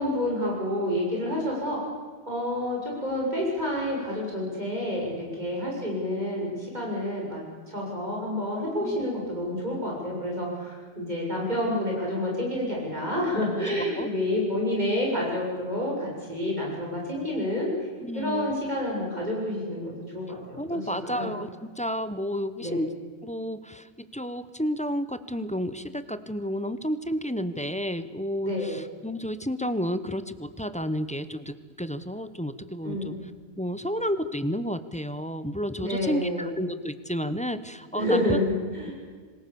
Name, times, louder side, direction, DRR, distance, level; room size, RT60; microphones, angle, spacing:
voice 1, 0.0-1.8 2.3-17.7 18.1-21.3 22.6-22.8 28.4-28.8 32.8-33.2 35.8-36.6 37.9-38.9, left 1 dB, 40° right, -3 dB, 7.0 m, -29 dB
voice 2, 13.7-14.1 18.0-18.6 20.6-22.9 23.2-33.1 33.6-38.4, equal, 5° left, 12 dB, 0.8 m, -31 dB
26.5 x 20.5 x 7.0 m, 1.6 s
omnidirectional pair, 1.2 m